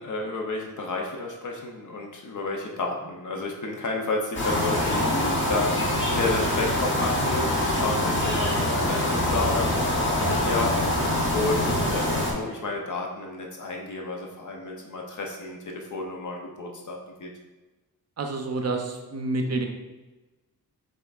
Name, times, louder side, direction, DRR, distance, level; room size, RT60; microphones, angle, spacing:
voice 1, 0.0-5.8 6.1-17.3, left 3 dB, 55° left, 1 dB, 0.6 m, -31 dB
sound 1, 4.3-12.3, left 1 dB, 30° left, 0.9 m, -24 dB
voice 2, 18.2-19.7, right 2 dB, 45° right, 4 dB, 0.5 m, -28 dB
5.5 x 3.7 x 2.3 m, 1.1 s
wide cardioid pair, 175°, 37 cm